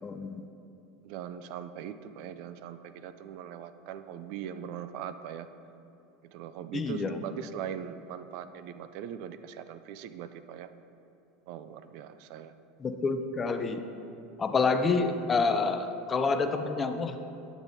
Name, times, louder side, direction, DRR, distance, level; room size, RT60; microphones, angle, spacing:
voice 1, 0.0-0.5 6.7-7.2 12.8-13.8 14.4-17.2, left 4 dB, 25° left, 8 dB, 0.5 m, -28 dB
voice 2, 1.0-5.5 6.3-10.7 11.5-12.5, right 9 dB, 65° right, 12 dB, 0.3 m, -41 dB
8.7 x 8.0 x 2.7 m, 2.7 s
hypercardioid pair, 100°, 0 cm